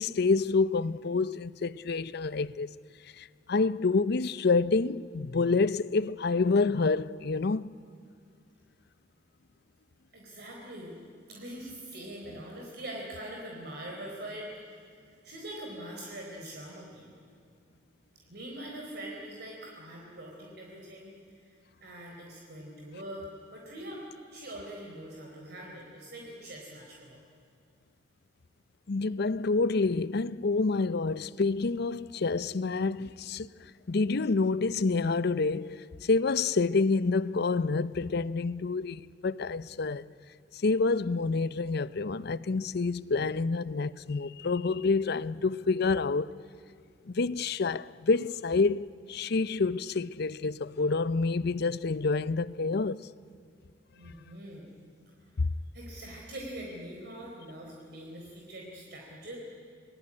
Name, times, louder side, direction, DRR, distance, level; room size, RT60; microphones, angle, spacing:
voice 1, 0.0-2.7 3.2-7.7 28.9-33.5 33.9-40.0 40.6-46.3 47.1-53.0 55.4-55.5, left 4 dB, 60° left, 0.6 m, -28 dB
voice 2, 10.1-11.0 11.3-17.1 18.1-21.2 21.4-24.0 24.3-27.2 53.9-54.7 55.7-59.4, right 1 dB, 60° right, 4.2 m, -43 dB
27.0 x 20.0 x 9.8 m
head